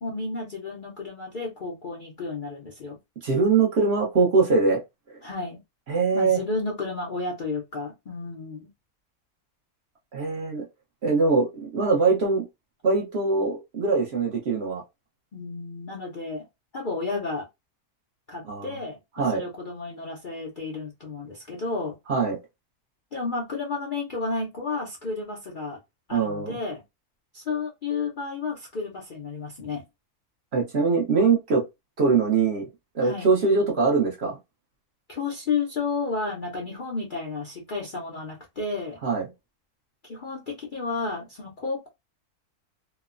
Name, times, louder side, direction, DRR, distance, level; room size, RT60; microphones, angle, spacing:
voice 1, 0.0-3.0 5.2-5.6 6.1-8.7 15.3-16.5 16.7-17.5 18.3-22.0 23.1-25.8 26.1-26.8 27.3-29.8 33.0-33.3 35.1-39.0 40.0-41.9, left 4 dB, 55° left, 0.5 m, -32 dB
voice 2, 3.2-4.8 5.1-5.2 5.9-6.4 10.1-10.6 11.0-12.4 12.8-14.8 18.5-18.7 19.2-19.4 22.1-22.4 26.1-26.6 30.5-31.6 32.0-32.7 32.9-34.4 39.0-39.2, right 4 dB, 55° right, 0.8 m, -22 dB
3.0 x 2.0 x 2.4 m
omnidirectional pair, 1.6 m